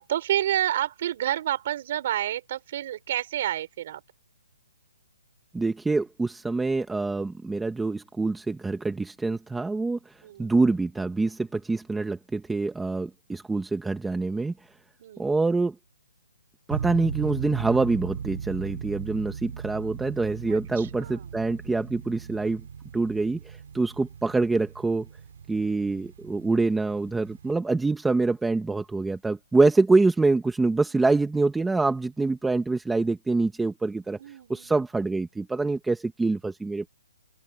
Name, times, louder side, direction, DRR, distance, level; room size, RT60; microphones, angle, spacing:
voice 1, 0.0-4.0 10.2-10.5 15.0-15.3 20.5-21.3 34.2-34.7, right 12 dB, 30° right, 4.1 m, -29 dB
voice 2, 5.5-14.7 15.2-15.7 16.7-22.6 22.9-25.1 25.5-36.9, right 3 dB, 5° right, 1.0 m, -25 dB
sound 1, 16.7-27.5, right 7 dB, 50° right, 4.4 m, -38 dB
open air
hypercardioid pair, 175°, 0 cm